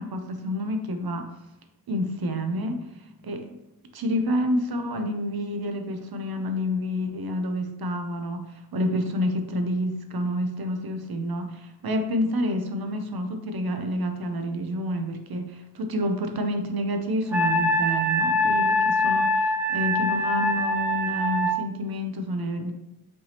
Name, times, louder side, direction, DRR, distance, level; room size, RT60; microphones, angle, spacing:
voice 1, 0.0-1.3 1.9-3.5 3.9-22.7, equal, 65° right, 6 dB, 0.7 m, -29 dB
Wind instrument woodwind instrument, 17.3-21.6, left 1 dB, 5° right, 0.4 m, -23 dB
5.3 x 3.3 x 2.9 m, 0.94 s
wide cardioid pair, 90°, 40 cm